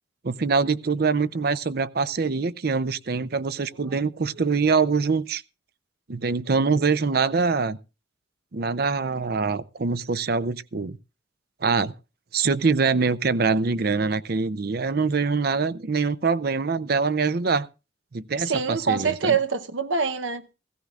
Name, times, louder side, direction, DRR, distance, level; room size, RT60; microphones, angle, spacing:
voice 1, 0.2-5.4 6.1-7.8 8.5-11.0 11.6-11.9 12.3-17.7 18.1-19.3, right 4 dB, 55° right, 0.6 m, -24 dB
voice 2, 18.4-20.5, right 5 dB, 80° right, 0.9 m, -25 dB
16.5 x 16.0 x 2.4 m
head